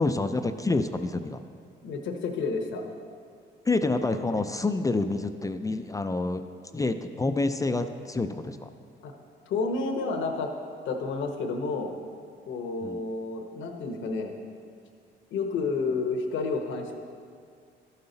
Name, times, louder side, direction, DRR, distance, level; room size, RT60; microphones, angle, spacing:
voice 1, 0.0-1.4 3.7-6.4 6.7-8.7 12.8-13.0, left 3 dB, 15° left, 8 dB, 0.4 m, -27 dB
voice 2, 1.8-2.8 4.3-4.4 9.0-9.1 9.5-10.5 10.9-11.9 12.5-14.3 15.3-16.9, left 4 dB, 75° left, 2 dB, 0.9 m, -30 dB
13.0 x 5.7 x 3.9 m, 2.3 s
cardioid pair, 90°, 20 cm